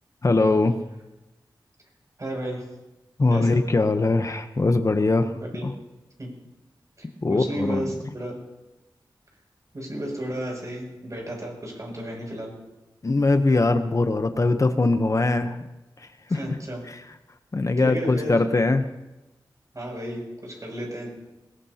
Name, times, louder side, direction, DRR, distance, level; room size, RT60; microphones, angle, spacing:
voice 1, 0.2-0.8 3.2-5.3 5.6-5.7 7.2-7.8 13.0-15.6 16.0-16.6 16.9-17.0 17.5-18.9, left 3 dB, 40° left, 8 dB, 0.8 m, -21 dB
voice 2, 2.2-2.6 3.3-3.6 5.4-5.6 6.2-6.3 7.3-8.4 9.7-12.5 16.3-16.8 17.8-18.4 19.7-21.1, equal, 45° right, -1 dB, 7.1 m, -33 dB
21.0 x 19.5 x 2.9 m, 1.0 s
wide cardioid pair, 75°, 8 cm